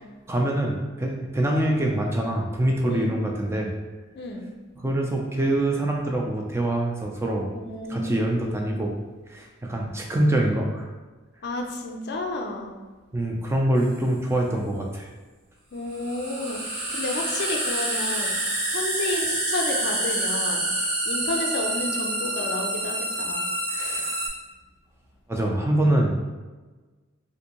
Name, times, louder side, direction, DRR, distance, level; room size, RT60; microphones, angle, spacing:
voice 1, 0.3-3.7 4.8-7.5 7.9-8.9 9.3-10.9 13.1-15.1 23.7-24.2 25.3-26.2, right 1 dB, 10° right, 0 dB, 0.3 m, -25 dB
voice 2, 2.8-3.2 4.2-4.4 7.6-8.5 11.4-12.7 15.7-18.4 18.7-20.7 21.1-23.4, left 2 dB, 50° left, 2 dB, 0.4 m, -31 dB
sound 1, 13.8-13.9 15.9-24.3, right 1 dB, 85° right, 0.9 m, -27 dB
3.4 x 2.6 x 2.9 m, 1.3 s
head